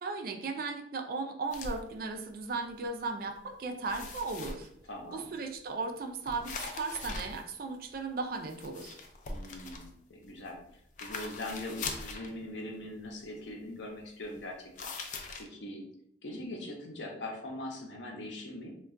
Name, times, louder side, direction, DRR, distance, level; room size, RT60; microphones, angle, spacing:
voice 1, 0.0-4.7 5.1-9.0, right 3 dB, 55° right, 5 dB, 0.4 m, -36 dB
sound 1, 1.5-1.8 2.5-2.7 3.0-3.5 3.8-4.9 6.3-8.0 8.4-10.6 11.0-12.3 14.8-15.5, left 3 dB, 45° left, 0.3 m, -41 dB
voice 2, 4.9-5.3 9.3-10.6 11.0-14.6 14.8-14.9 15.4-15.8 16.2-18.7, left 1 dB, 90° left, 0 dB, 0.7 m, -41 dB
2.3 x 2.2 x 3.5 m, 0.70 s
head